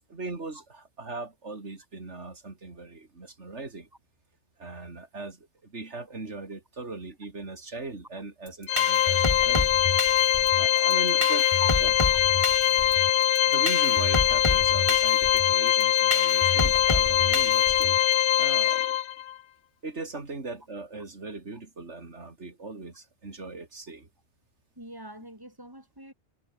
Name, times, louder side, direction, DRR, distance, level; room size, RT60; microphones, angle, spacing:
voice 1, 0.1-3.9 4.6-9.7 10.6-11.5 11.8-11.9 13.5-18.0 18.4-19.0 19.8-24.1, right 3 dB, 75° right, 3.5 m, -39 dB
sound 1, 8.5-18.1, left 1 dB, 25° left, 3.1 m, -30 dB
Organ, 8.7-19.3, left 11 dB, 75° left, 0.9 m, -22 dB
voice 2, 11.3-11.7 12.1-12.2 24.8-26.1, right 1 dB, 20° right, 7.3 m, -45 dB
omnidirectional pair, 1.2 m